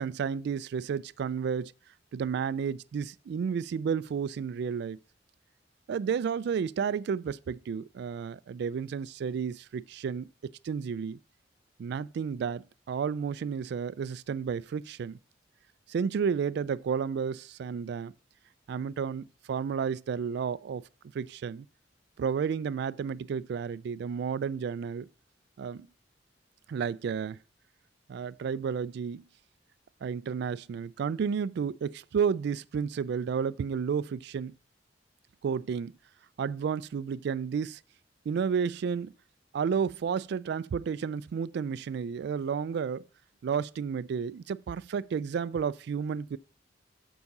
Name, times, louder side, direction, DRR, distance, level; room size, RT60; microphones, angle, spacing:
voice 1, 0.0-1.7 2.1-5.0 5.9-11.2 11.8-15.2 15.9-18.1 18.7-20.8 21.1-21.7 22.2-25.1 25.6-25.9 26.7-27.4 28.1-29.2 30.0-34.5 35.4-35.9 36.4-37.8 38.3-39.1 39.5-43.1 43.4-46.4, right 6 dB, 65° right, 0.3 m, -32 dB
7.1 x 4.8 x 5.3 m
head